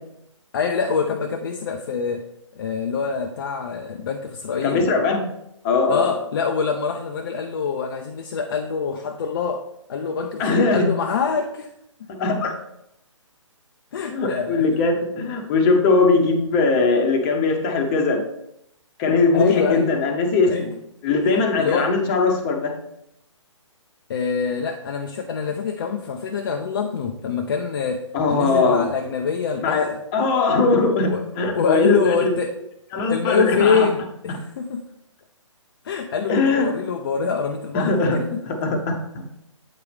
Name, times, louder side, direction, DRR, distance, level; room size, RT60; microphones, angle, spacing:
voice 1, 0.5-2.3 2.5-4.9 5.9-11.7 12.0-12.1 13.9-14.6 19.3-19.9 20.5-20.7 21.6-21.9 24.1-29.9 31.0-32.6 33.0-34.8 35.8-38.4, left 6 dB, 45° left, 4 dB, 0.6 m, -25 dB
voice 2, 4.6-5.3 5.6-6.2 10.4-11.0 12.1-12.6 14.1-18.2 19.0-20.8 21.0-22.8 28.1-28.9 29.6-32.4 32.9-33.9 36.3-36.7 37.7-38.9, left 3 dB, 25° left, 3 dB, 1.1 m, -20 dB
8.4 x 4.7 x 3.4 m, 0.79 s
figure-of-eight pair, 135°, 16 cm